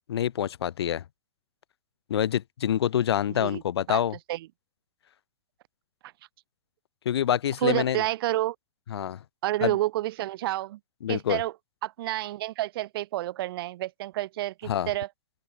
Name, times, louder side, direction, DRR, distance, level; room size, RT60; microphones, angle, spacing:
voice 1, 0.1-1.0 2.1-4.1 7.0-8.0 8.9-9.2 9.6-9.7 11.0-11.4 14.7-14.9, left 10 dB, 85° left, 1.4 m, -26 dB
voice 2, 3.3-3.6 3.9-4.0 4.3-4.5 7.6-8.6 9.4-10.8 11.1-11.5 11.8-15.1, right 15 dB, 65° right, 0.6 m, -29 dB
open air
hypercardioid pair, 130°, 13 cm